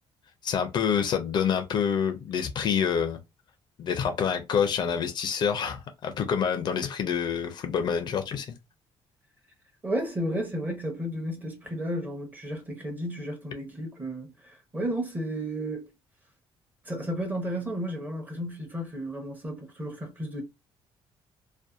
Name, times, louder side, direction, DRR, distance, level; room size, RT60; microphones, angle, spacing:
voice 1, 0.4-3.2 3.8-8.5, left 7 dB, 50° left, 0.4 m, -27 dB
voice 2, 9.8-15.9 16.8-20.4, equal, 15° right, 0.8 m, -33 dB
2.6 x 2.1 x 2.3 m
cardioid pair, 145°, 10 cm